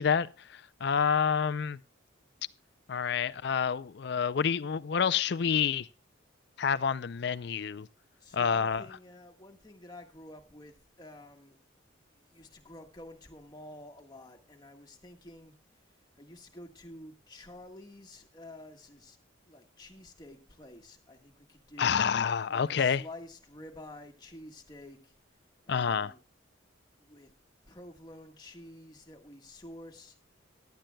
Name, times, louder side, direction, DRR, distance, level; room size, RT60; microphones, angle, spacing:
voice 1, 0.0-1.8 2.9-5.9 6.6-7.9 8.3-8.9 21.8-23.0 25.7-26.1, left 7 dB, 55° left, 0.4 m, -28 dB
voice 2, 8.2-11.6 12.1-15.5 16.2-19.2 19.4-22.0 22.5-25.1 25.6-26.2 27.0-27.3 27.7-30.2, left 1 dB, 20° left, 1.4 m, -50 dB
16.5 x 11.5 x 2.2 m
head